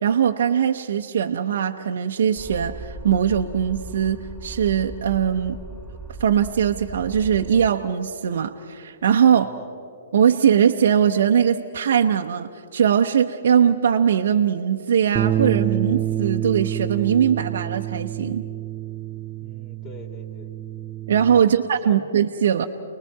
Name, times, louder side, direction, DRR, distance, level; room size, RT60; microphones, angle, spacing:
voice 1, 0.0-5.6 6.2-9.5 10.1-18.4 21.1-22.6, right 8 dB, 65° right, 4 dB, 0.8 m, -20 dB
sound 1, 2.4-7.7, right 2 dB, 10° left, 2.1 m, -38 dB
voice 2, 9.3-9.7 19.4-20.5 21.4-22.1, left 1 dB, 30° left, 3 dB, 2.5 m, -43 dB
sound 2, 15.1-21.4, right 11 dB, 20° right, 0.4 m, -27 dB
29.0 x 20.0 x 4.7 m, 2.5 s
hypercardioid pair, 135°, 0 cm